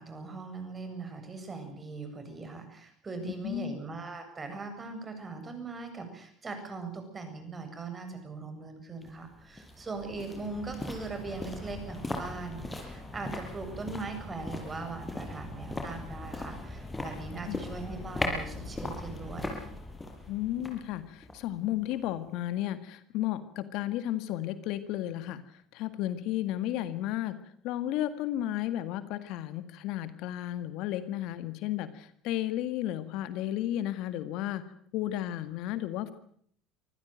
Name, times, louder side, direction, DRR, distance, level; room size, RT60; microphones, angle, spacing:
voice 1, 0.0-19.6, right 3 dB, 30° right, 7 dB, 7.6 m, -40 dB
voice 2, 3.2-3.7 17.5-17.6 20.3-27.4 27.6-34.6 34.9-36.1, left 13 dB, 65° left, 12 dB, 1.7 m, -33 dB
sound 1, 9.0-22.2 22.5-22.6, left 2 dB, 15° left, 6.0 m, -39 dB
25.0 x 15.0 x 9.1 m, 0.63 s
hypercardioid pair, 75°, 0 cm